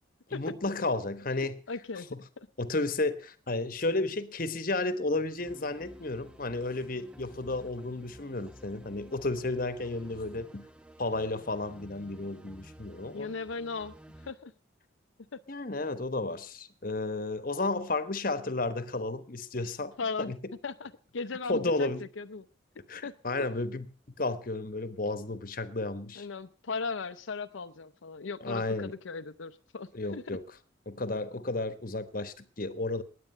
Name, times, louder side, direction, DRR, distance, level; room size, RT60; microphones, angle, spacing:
voice 1, 0.3-1.6 2.1-2.2 2.6-10.7 11.0-13.3 15.5-20.5 21.5-22.0 22.9-23.9 24.2-26.3 28.4-29.0 29.9-30.4 30.9-33.0, left 2 dB, 45° left, 1.1 m, -32 dB
voice 2, 1.7-2.1 2.4-2.5 13.1-13.9 14.2-14.5 15.3-15.4 20.0-20.3 20.6-22.4 23.0-23.1 23.4-23.5 26.2-30.4, left 4 dB, 80° left, 0.6 m, -37 dB
sound 1, 5.4-14.3, equal, 5° right, 0.6 m, -52 dB
19.5 x 8.5 x 5.5 m
head